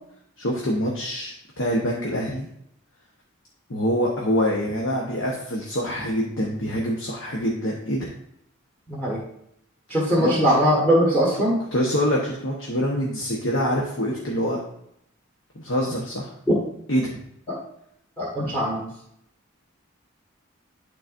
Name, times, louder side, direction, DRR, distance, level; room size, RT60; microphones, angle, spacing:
voice 1, 0.4-2.5 3.7-8.1 10.2-10.3 11.7-14.6 15.5-16.3 16.9-17.2 18.4-18.5, equal, 65° left, -2 dB, 1.1 m, -25 dB
voice 2, 8.9-9.2 9.9-11.6 17.5-17.6 18.2-18.9, equal, 10° left, -4 dB, 1.5 m, -21 dB
11.5 x 4.0 x 2.6 m, 0.75 s
head